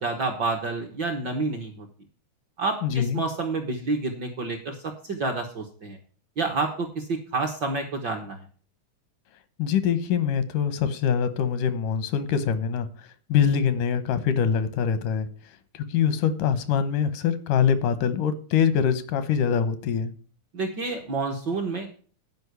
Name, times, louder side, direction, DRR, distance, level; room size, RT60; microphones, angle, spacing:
voice 1, 0.0-1.9 2.6-6.0 6.4-8.4 20.5-22.1, right 3 dB, 60° right, 1.2 m, -29 dB
voice 2, 2.8-3.2 9.6-12.9 13.3-15.3 15.7-20.1, left 7 dB, 90° left, 2.6 m, -24 dB
10.5 x 5.2 x 8.1 m
omnidirectional pair, 3.5 m